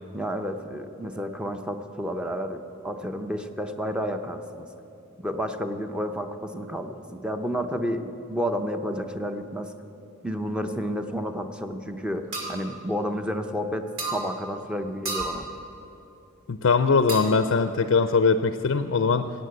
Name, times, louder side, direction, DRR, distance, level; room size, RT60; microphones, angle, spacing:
voice 1, 0.1-4.7 5.2-9.7 10.2-15.5, equal, 5° right, 6 dB, 0.7 m, -31 dB
sound 1, 12.3-12.6 14.0-14.2 15.1-15.4 17.1-17.5, right 3 dB, 75° right, 2.5 m, -31 dB
voice 2, 16.5-19.3, left 4 dB, 70° left, 9 dB, 0.5 m, -21 dB
16.0 x 8.9 x 7.7 m, 3.0 s
head